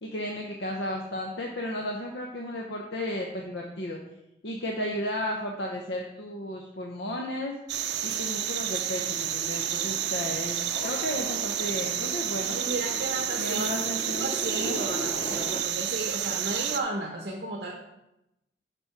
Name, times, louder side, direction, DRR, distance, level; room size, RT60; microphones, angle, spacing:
voice 1, 0.0-4.0 4.4-7.5 8.0-10.6 10.8-12.6 13.4-14.8, left 1 dB, 80° left, 0 dB, 0.9 m, -34 dB
sound 1, 7.7-16.8, right 10 dB, 80° right, 0.5 m, -30 dB
sound 2, 8.9-15.6, left 1 dB, 35° left, 0.7 m, -40 dB
voice 2, 12.5-13.8 14.2-17.7, right 2 dB, 60° right, 0 dB, 0.9 m, -33 dB
6.9 x 5.4 x 5.9 m, 0.90 s
head